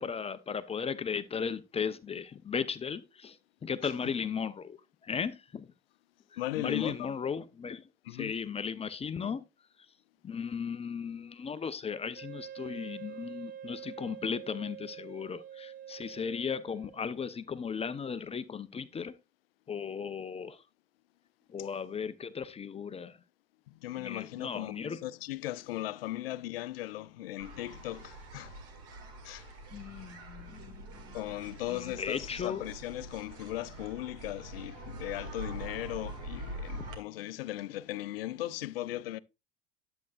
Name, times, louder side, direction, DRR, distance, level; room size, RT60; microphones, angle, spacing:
voice 1, 0.0-4.8 5.0-5.7 6.3-7.8 8.1-9.4 10.2-19.2 19.7-20.6 21.5-23.2 24.0-25.0 29.7-31.2 31.7-32.6 36.8-36.9, left 6 dB, 20° left, 0.6 m, -36 dB
voice 2, 6.4-7.1 8.0-8.4 23.7-28.6 29.2-29.6 31.1-39.2, left 15 dB, 70° left, 0.5 m, -38 dB
Wind instrument woodwind instrument, 12.2-17.2, right 10 dB, 30° right, 0.7 m, -46 dB
sound 1, 27.4-36.9, right 1 dB, 55° right, 2.1 m, -44 dB
10.5 x 7.9 x 2.4 m
figure-of-eight pair, 65°, 30 cm